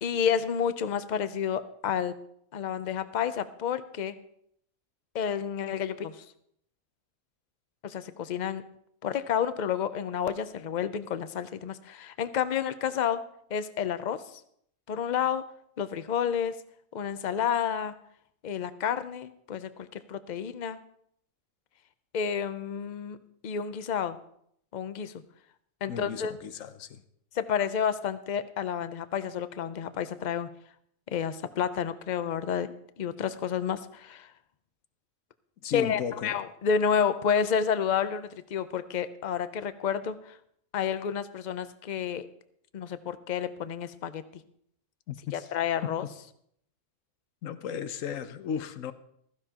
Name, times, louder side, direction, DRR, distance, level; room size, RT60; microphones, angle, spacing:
voice 1, 0.0-2.1 2.5-4.1 5.1-6.2 7.8-8.6 9.0-13.2 13.5-14.2 14.9-15.4 15.8-16.5 16.9-17.9 18.4-20.8 22.1-23.2 23.4-24.2 24.7-25.1 25.8-26.3 27.4-30.5 31.1-34.3 35.7-40.4 40.7-42.3 42.7-44.2 45.3-46.0, left 8 dB, 45° left, 12 dB, 0.6 m, -30 dB
voice 2, 25.9-27.0 35.6-36.4 45.1-45.5 45.8-45.9 47.4-48.9, left 8 dB, 70° left, 12 dB, 1.1 m, -35 dB
15.5 x 14.5 x 2.9 m, 0.69 s
omnidirectional pair, 1.4 m